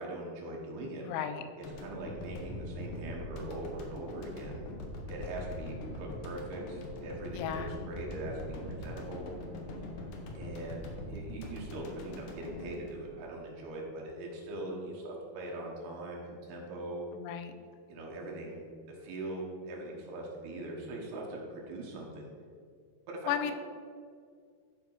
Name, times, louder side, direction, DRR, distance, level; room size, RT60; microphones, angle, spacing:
voice 1, 0.0-1.0 1.8-4.6 5.1-9.3 10.3-17.0 17.9-22.3 23.1-23.5, right 1 dB, 70° right, -2 dB, 3.1 m, -41 dB
voice 2, 1.0-1.4 7.3-7.7 17.2-17.5 23.3-23.5, left 9 dB, 85° left, 9 dB, 3.1 m, -34 dB
sound 1, 1.6-13.8, left 1 dB, 70° left, 1.9 m, -43 dB
13.5 x 5.2 x 4.8 m, 2.2 s
omnidirectional pair, 5.2 m